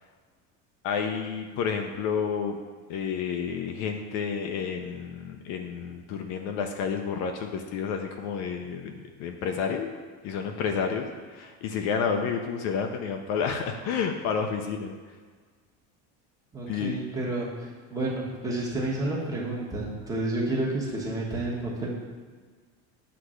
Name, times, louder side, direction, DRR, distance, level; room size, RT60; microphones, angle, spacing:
voice 1, 0.8-2.6 2.9-9.9 10.2-14.9 16.7-17.0, left 6 dB, 55° left, 4 dB, 0.6 m, -30 dB
voice 2, 16.5-21.9, right 2 dB, 10° right, -5 dB, 1.2 m, -30 dB
8.0 x 3.4 x 6.3 m, 1.5 s
cardioid pair, 175°, 33 cm